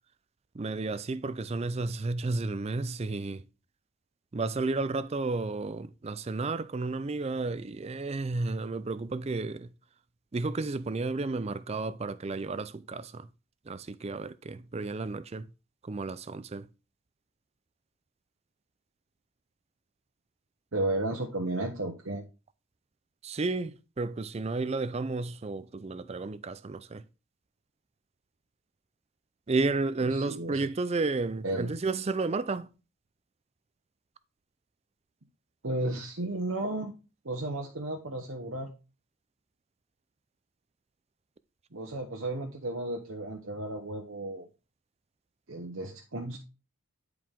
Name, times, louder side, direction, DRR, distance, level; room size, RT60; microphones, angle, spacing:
voice 1, 0.5-3.4 4.3-9.7 10.3-13.3 13.7-15.5 15.8-16.7 23.2-27.0 29.5-32.7, right 3 dB, 30° right, 0.4 m, -32 dB
voice 2, 20.7-22.2 30.0-30.7 31.4-31.7 35.6-36.9 37.2-38.7 41.7-44.5 45.5-46.4, right 2 dB, 60° right, 1.0 m, -33 dB
10.0 x 4.7 x 3.7 m
head